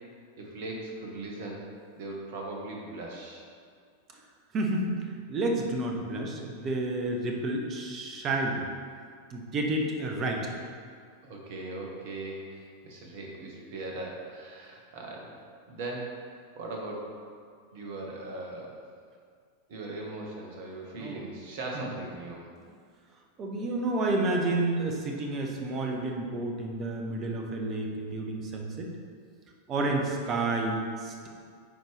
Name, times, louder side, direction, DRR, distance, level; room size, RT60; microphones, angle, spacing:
voice 1, 0.4-1.7 1.9-3.4 11.2-15.3 15.7-16.2 16.5-17.1 17.7-18.8 19.7-22.4, right 2 dB, 50° right, -1 dB, 1.4 m, -39 dB
voice 2, 4.5-5.0 5.3-8.6 9.3-10.5 21.0-21.2 21.7-21.9 23.4-28.9 29.7-31.3, right 2 dB, 30° right, 1 dB, 1.0 m, -30 dB
9.0 x 4.5 x 3.4 m, 2.1 s
figure-of-eight pair, 90°, 0 cm